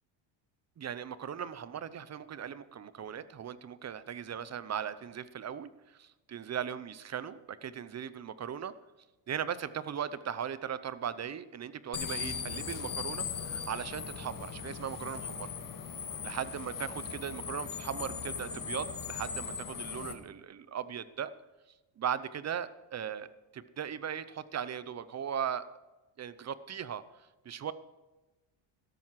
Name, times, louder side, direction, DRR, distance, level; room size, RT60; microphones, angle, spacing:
voice 1, 0.8-8.7 9.3-15.5 16.2-21.3 22.0-23.3 23.5-25.6 26.2-27.0 27.4-27.7, right 8 dB, 35° right, 15 dB, 0.7 m, -38 dB
sound 1, 11.9-20.1, left 6 dB, 40° left, 1.9 m, -39 dB
13.5 x 12.0 x 4.8 m, 1.1 s
cardioid pair, 120°, 50 cm